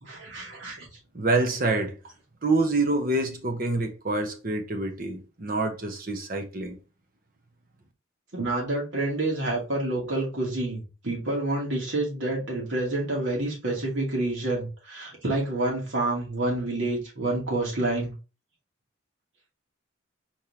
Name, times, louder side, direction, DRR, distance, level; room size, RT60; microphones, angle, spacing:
voice 1, 0.0-0.9 8.3-18.1, right 2 dB, 70° right, 2.3 m, -28 dB
voice 2, 1.1-2.0 2.4-6.8, right 2 dB, 45° right, 0.9 m, -26 dB
4.4 x 3.5 x 2.9 m
head